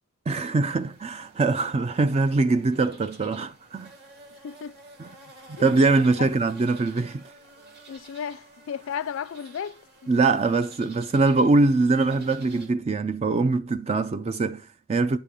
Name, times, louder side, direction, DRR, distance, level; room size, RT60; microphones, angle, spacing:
voice 1, 0.3-3.9 5.0-5.1 5.5-7.3 10.1-15.2, right 3 dB, 30° right, 0.3 m, -23 dB
sound 1, 0.7-12.7, right 2 dB, 45° right, 2.5 m, -50 dB
voice 2, 4.4-4.8 5.6-5.7 6.2-6.3 7.9-9.8, left 7 dB, 60° left, 0.3 m, -34 dB
9.1 x 6.9 x 3.6 m
head